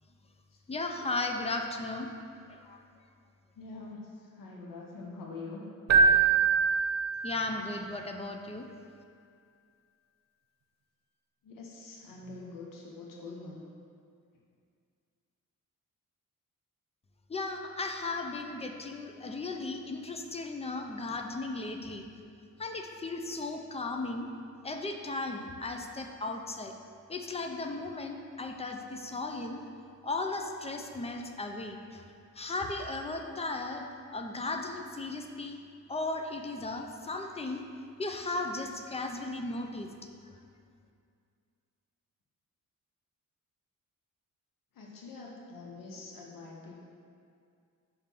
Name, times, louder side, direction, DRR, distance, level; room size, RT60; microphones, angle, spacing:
voice 1, 0.7-2.1 2.5-2.8 7.2-8.7 17.3-22.1 22.6-24.3 24.6-26.7 27.1-29.6 30.0-32.0 32.4-33.9 34.1-35.6 35.9-37.6 38.0-39.9, left 2 dB, 20° left, 4 dB, 0.4 m, -36 dB
voice 2, 3.6-5.6 11.4-13.6 44.8-46.8, left 3 dB, 80° left, -2 dB, 0.9 m, -45 dB
Keyboard (musical), 5.9-7.7, right 5 dB, 55° right, 0.6 m, -24 dB
5.6 x 3.7 x 5.8 m, 2.3 s
cardioid pair, 120°, 33 cm